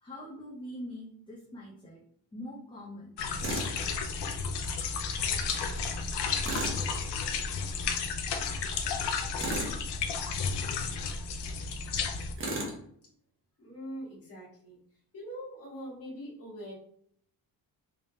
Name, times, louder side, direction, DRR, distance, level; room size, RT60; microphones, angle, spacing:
voice 1, 0.0-2.0 2.3-4.2, equal, 10° left, -6 dB, 0.5 m, -44 dB
sound 1, 3.2-12.3, left 5 dB, 85° left, 0.6 m, -32 dB
Tools, 3.4-3.7 6.4-6.8 9.4-9.8 12.4-12.8, right 2 dB, 30° right, 0.8 m, -34 dB
voice 2, 13.6-14.8 15.1-16.7, equal, 35° left, -5 dB, 1.4 m, -42 dB
3.5 x 3.3 x 2.7 m, 0.65 s
cardioid pair, 175°, 40 cm